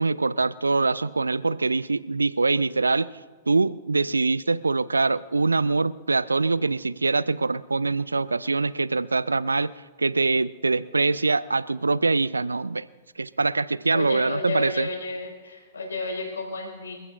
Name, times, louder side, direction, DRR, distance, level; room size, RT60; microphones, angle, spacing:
voice 1, 0.0-3.1 3.5-9.7 10.0-12.8 13.2-14.9, right 3 dB, 75° right, 19 dB, 0.3 m, -24 dB
voice 2, 13.9-17.0, left 3 dB, 70° left, 0 dB, 4.9 m, -32 dB
28.5 x 15.0 x 2.5 m, 1.5 s
figure-of-eight pair, 110°, 0 cm